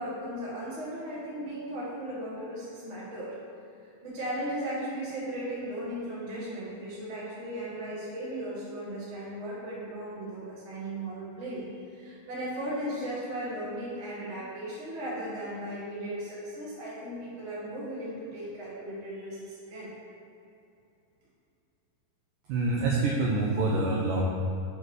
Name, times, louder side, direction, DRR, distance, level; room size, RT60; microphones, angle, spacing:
voice 1, 0.0-3.3 3.8-19.9, right 1 dB, 50° right, -8 dB, 0.8 m, -36 dB
voice 2, 22.5-24.2, right 3 dB, 80° right, -3 dB, 1.9 m, -26 dB
6.9 x 4.1 x 6.4 m, 2.7 s
omnidirectional pair, 4.7 m